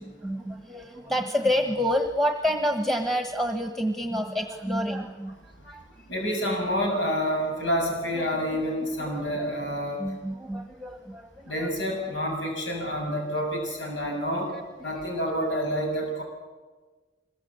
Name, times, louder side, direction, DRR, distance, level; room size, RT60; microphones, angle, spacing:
voice 1, 0.0-5.8 8.1-8.6 9.1-9.5 10.0-11.7 14.0-14.1 14.9-15.0, equal, ahead, 4 dB, 1.4 m, -29 dB
voice 2, 6.1-10.0 11.5-14.5 14.8-16.2, equal, 85° left, 1 dB, 6.7 m, -28 dB
26.0 x 22.0 x 8.3 m, 1.3 s
head